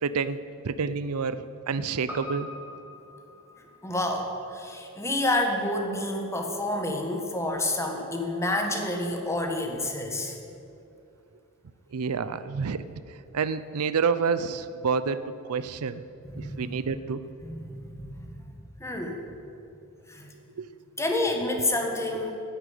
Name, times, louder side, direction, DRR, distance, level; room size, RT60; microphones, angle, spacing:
voice 1, 0.0-2.5 11.9-15.2 15.5-16.1 16.4-17.2 20.6-20.7 22.2-22.3, right 5 dB, 75° right, 14 dB, 0.5 m, -29 dB
Piano, 2.1-6.6 6.9-7.0, left 1 dB, 10° right, 1.8 m, -45 dB
voice 2, 3.8-10.4 16.3-16.7 17.4-18.1 18.8-19.2 20.1-20.3 21.0-22.3, left 1 dB, 15° left, 3 dB, 1.5 m, -29 dB
10.0 x 10.0 x 9.1 m, 2.6 s
head